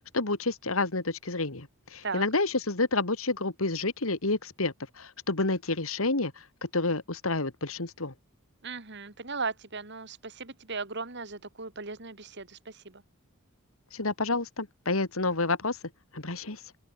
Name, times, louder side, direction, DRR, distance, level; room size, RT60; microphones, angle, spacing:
voice 1, 0.1-6.3 6.7-8.1 13.9-15.8 16.1-16.6, left 3 dB, 75° left, 2.5 m, -29 dB
voice 2, 8.6-13.0, right 4 dB, 55° right, 3.0 m, -37 dB
open air
head